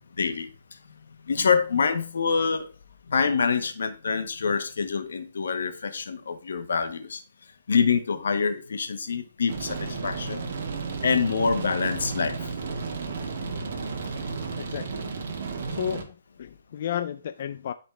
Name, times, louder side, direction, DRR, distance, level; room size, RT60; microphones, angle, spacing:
voice 1, 1.3-2.7 3.1-7.2 7.7-10.4 11.0-12.4, left 5 dB, 80° left, 1.4 m, -25 dB
sound 1, 9.5-16.0, right 4 dB, 60° right, 1.8 m, -33 dB
voice 2, 14.6-15.1 15.7-17.7, left 9 dB, 50° left, 0.4 m, -33 dB
12.5 x 4.2 x 3.4 m
hypercardioid pair, 160°, 0 cm